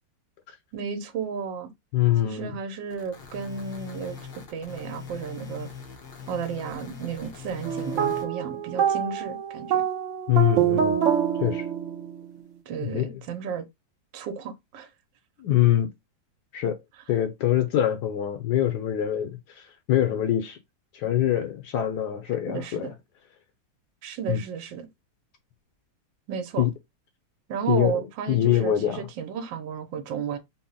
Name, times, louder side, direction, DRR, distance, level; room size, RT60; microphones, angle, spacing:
voice 1, 0.7-1.7 2.2-4.2 4.5-5.7 6.3-9.8 12.7-13.7 14.1-14.9 22.5-22.9 24.0-24.9 26.3-26.7 27.5-30.4, right 6 dB, 80° right, 1.4 m, -33 dB
voice 2, 1.9-2.5 10.3-11.0 11.4-11.7 12.8-13.2 15.4-15.9 16.5-16.8 17.1-20.6 20.9-22.9 24.3-24.4 26.6-26.7 27.7-28.0 28.3-29.0, left 12 dB, 70° left, 1.1 m, -24 dB
sound 1, 2.9-8.2, left 6 dB, 55° left, 0.7 m, -41 dB
sound 2, 7.6-12.3, right 9 dB, 65° right, 0.8 m, -26 dB
4.1 x 2.1 x 3.7 m
omnidirectional pair, 2.0 m